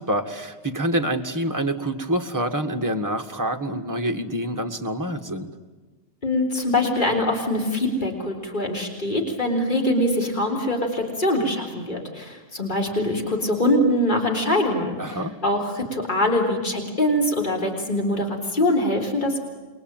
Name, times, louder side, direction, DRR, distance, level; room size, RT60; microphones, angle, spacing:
voice 1, 0.0-5.5 15.0-15.4, right 1 dB, 15° right, 5 dB, 1.6 m, -26 dB
voice 2, 6.2-19.4, left 1 dB, 35° left, 2 dB, 3.9 m, -23 dB
28.5 x 22.5 x 9.0 m, 1.3 s
omnidirectional pair, 1.4 m